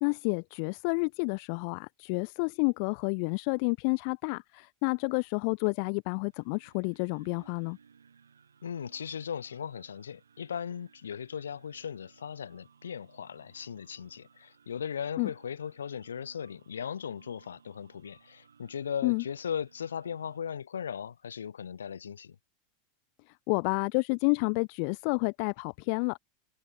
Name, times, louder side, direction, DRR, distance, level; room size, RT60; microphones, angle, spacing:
voice 1, 0.0-7.8 15.2-15.3 19.0-19.2 23.5-26.2, left 40 dB or more, 55° left, 0.4 m, -30 dB
sound 1, 6.1-20.4, right 6 dB, 80° right, 6.1 m, -61 dB
voice 2, 8.6-22.4, left 7 dB, 80° left, 4.1 m, -38 dB
hypercardioid pair, 90°, 0 cm